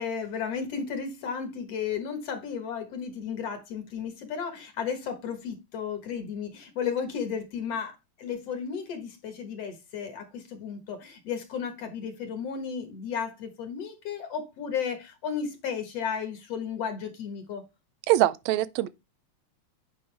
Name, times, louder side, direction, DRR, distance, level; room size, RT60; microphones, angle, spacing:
voice 1, 0.0-17.6, left 7 dB, 60° left, 2.2 m, -34 dB
voice 2, 18.1-18.9, right 16 dB, 80° right, 1.7 m, -23 dB
9.5 x 5.3 x 3.3 m
omnidirectional pair, 3.5 m